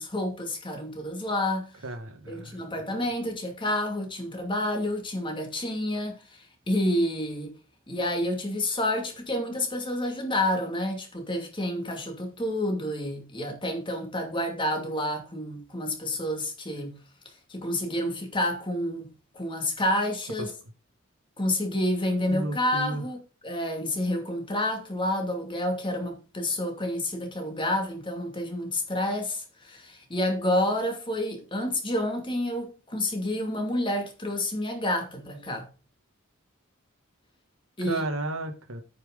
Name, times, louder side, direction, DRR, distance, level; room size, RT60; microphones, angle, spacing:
voice 1, 0.0-1.7 2.3-7.6 7.9-16.9 17.2-20.5 21.4-35.7 37.8-38.1, left 1 dB, 25° left, 2.5 m, -29 dB
voice 2, 1.8-2.6 22.3-23.0 37.8-38.8, right 2 dB, 75° right, 1.8 m, -33 dB
9.2 x 6.1 x 5.2 m
head